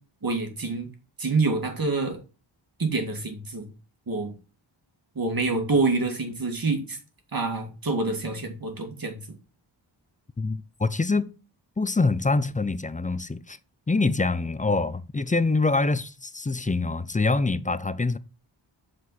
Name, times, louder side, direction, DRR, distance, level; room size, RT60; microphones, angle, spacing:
voice 1, 0.2-0.9 1.2-2.2 2.8-3.6 4.1-4.3 5.2-7.0 7.3-9.2, right 3 dB, 45° right, 2.3 m, -26 dB
voice 2, 10.4-11.3 11.8-13.6 13.9-18.2, left 3 dB, 15° left, 0.5 m, -25 dB
7.8 x 4.8 x 4.2 m
wide cardioid pair, 85°, 47 cm